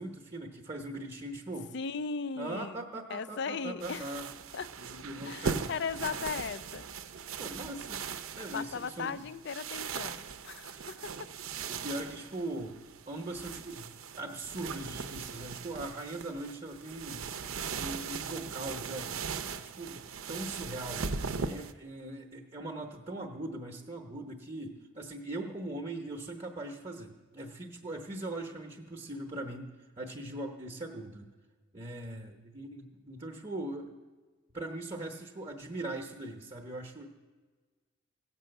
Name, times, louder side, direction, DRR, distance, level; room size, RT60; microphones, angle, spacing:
voice 1, 0.0-1.7 2.4-4.3 4.8-5.6 7.4-8.0 8.4-9.3 11.7-12.8 13.1-17.3 17.7-20.0 20.3-21.1 21.4-31.3 31.7-33.9 34.5-37.1, right 1 dB, 30° right, 1 dB, 0.9 m, -40 dB
voice 2, 1.7-2.8 3.1-4.1 4.5-4.7 5.2-6.8 8.5-11.3, left 5 dB, 55° left, 15 dB, 0.4 m, -37 dB
sound 1, 3.8-21.7, right 5 dB, 80° right, 0.7 m, -39 dB
16.5 x 6.1 x 7.8 m, 1.4 s
head